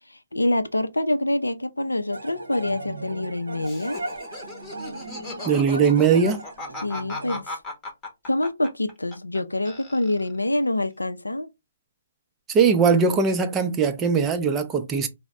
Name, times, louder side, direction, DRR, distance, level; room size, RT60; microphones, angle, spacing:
voice 1, 0.3-4.0 6.8-7.6 8.3-11.5, left 1 dB, 80° left, 0.4 m, -26 dB
sound 1, 2.1-7.4, right 2 dB, 70° right, 0.7 m, -37 dB
Laughter, 3.6-9.4 9.7-10.4, left 2 dB, 15° left, 0.8 m, -37 dB
voice 2, 5.5-6.4 12.5-15.1, right 5 dB, 15° right, 0.5 m, -20 dB
4.0 x 2.0 x 3.5 m
figure-of-eight pair, 130°, 0 cm